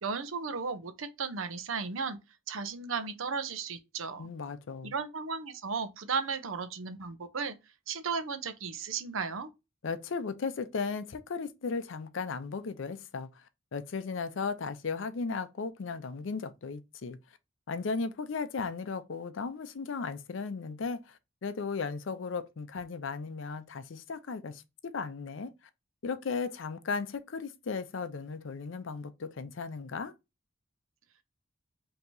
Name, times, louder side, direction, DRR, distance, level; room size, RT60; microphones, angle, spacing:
voice 1, 0.0-2.2 2.5-4.3 4.8-7.6 7.9-9.5, right 5 dB, 90° right, 0.7 m, -35 dB
voice 2, 4.2-4.9 9.8-13.5 13.7-17.2 17.7-25.5 26.0-30.1, left 4 dB, 65° left, 0.5 m, -36 dB
4.5 x 2.9 x 2.6 m
head